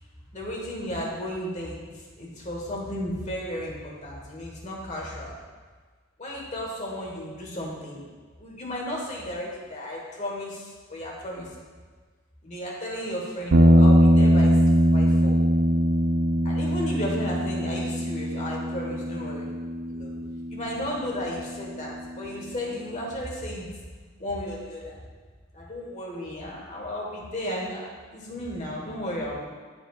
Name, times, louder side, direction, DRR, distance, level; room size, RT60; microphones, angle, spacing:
voice 1, 0.3-1.8 2.2-5.4 6.2-8.0 8.4-11.6 12.4-14.6 14.9-15.4 16.4-19.5 19.9-20.1 20.5-23.7 24.2-25.0 25.5-29.4, equal, 35° left, -3 dB, 1.5 m, -34 dB
sound 1, 13.5-21.8, equal, 70° right, 0.5 m, -21 dB
12.5 x 4.7 x 2.5 m, 1.5 s
head